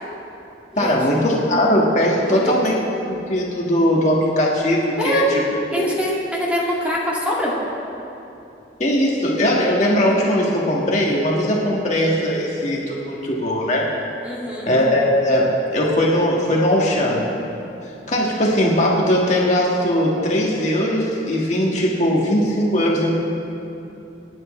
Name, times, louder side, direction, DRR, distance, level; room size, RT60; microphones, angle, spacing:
voice 1, 0.8-2.7 3.1-5.4 5.7-5.9 8.8-13.9 14.7-17.2 18.1-23.1, equal, 40° left, -3 dB, 1.8 m, -19 dB
voice 2, 2.1-2.5 5.0-5.3 5.7-7.5 14.2-14.7, equal, 10° right, -5 dB, 2.1 m, -24 dB
28.0 x 9.7 x 3.3 m, 2.8 s
head